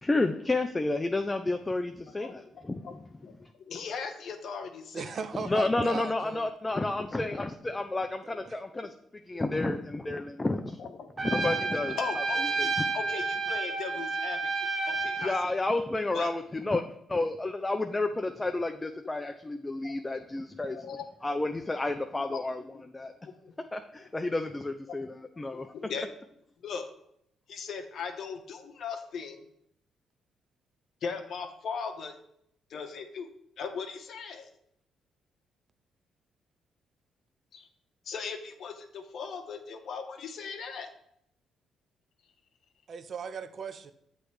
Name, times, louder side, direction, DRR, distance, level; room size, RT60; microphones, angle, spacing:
voice 1, 0.0-2.9 5.4-8.9 9.3-10.8 11.2-12.2 12.6-12.9 15.2-20.8 21.2-22.6 22.9-23.1 23.7-25.7, left 2 dB, 20° left, 6 dB, 0.4 m, -31 dB
voice 2, 3.7-5.1 9.3-9.4 10.8-11.1 11.4-11.7 11.9-15.7 16.1-16.3 19.8-19.9 20.6-21.0 22.2-22.4 22.7-22.8 23.2-23.5 25.5-26.1 26.6-26.9 27.5-29.5 31.0-32.1 32.7-34.5 37.5-37.7 38.0-40.9, left 5 dB, 65° left, 4 dB, 0.8 m, -38 dB
voice 3, 4.9-6.5 8.5-8.6 42.9-43.9, right 5 dB, 50° right, 12 dB, 0.5 m, -37 dB
Trumpet, 11.2-15.4, right 4 dB, 30° right, 0.8 m, -30 dB
7.6 x 3.2 x 4.7 m, 0.74 s
cardioid pair, 90°, 0 cm